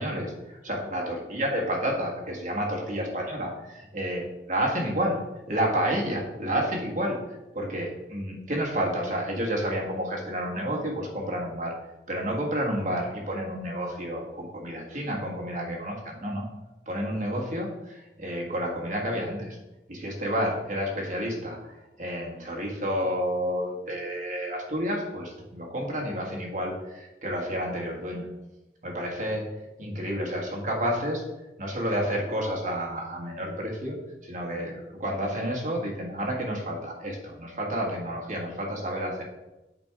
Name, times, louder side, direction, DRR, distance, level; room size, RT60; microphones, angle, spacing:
voice 1, 0.0-4.2 4.5-5.2 5.5-7.2 7.5-11.7 12.1-16.5 16.9-19.6 19.9-28.3 28.8-29.5 29.8-31.2 31.6-39.2, equal, 45° right, -1 dB, 1.5 m, -30 dB
7.7 x 3.5 x 4.7 m, 1.0 s
head